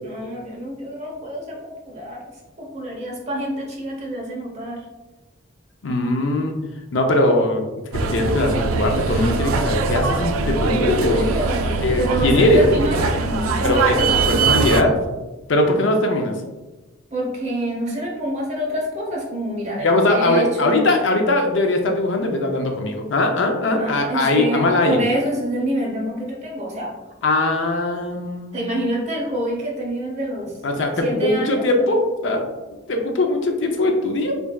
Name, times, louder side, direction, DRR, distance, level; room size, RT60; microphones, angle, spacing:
voice 1, 0.0-2.2 2.6-4.8 10.4-14.4 17.1-20.8 23.8-26.9 28.5-30.5 31.0-31.9, equal, 35° right, -3 dB, 0.9 m, -27 dB
voice 2, 5.8-6.5 6.9-7.6 7.9-11.3 11.8-12.7 13.6-15.2 15.5-16.3 19.8-25.0 27.2-28.7 30.6-32.4 32.9-34.4, left 2 dB, 65° left, 3 dB, 0.5 m, -20 dB
sound 1, 7.9-14.8, right 4 dB, 85° right, 0.3 m, -22 dB
4.0 x 3.4 x 2.2 m, 1.1 s
head